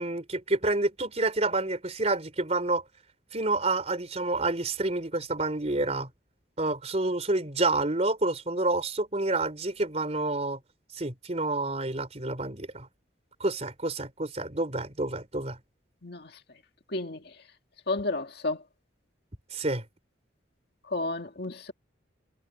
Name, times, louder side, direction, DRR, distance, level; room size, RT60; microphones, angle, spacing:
voice 1, 0.0-2.8 3.3-6.1 6.6-10.6 10.9-12.9 13.4-15.6 19.5-19.8, right 2 dB, 35° right, 4.2 m, -28 dB
voice 2, 16.9-17.3 17.9-18.6 20.9-21.7, left 2 dB, 60° left, 2.1 m, -32 dB
head